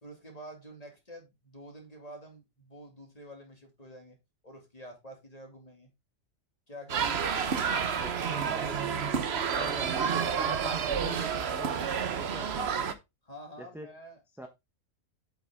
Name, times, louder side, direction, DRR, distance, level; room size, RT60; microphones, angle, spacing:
voice 1, 0.0-4.2 4.4-5.9 6.7-7.2 13.2-14.2, equal, 30° left, 2.4 m, -48 dB
sound 1, 6.9-12.9, right 7 dB, 55° right, 1.1 m, -30 dB
voice 2, 7.5-9.1 9.5-13.0 13.6-13.9 14.4-14.5, equal, ahead, 0.8 m, -44 dB
8.2 x 5.8 x 3.4 m
omnidirectional pair, 1.4 m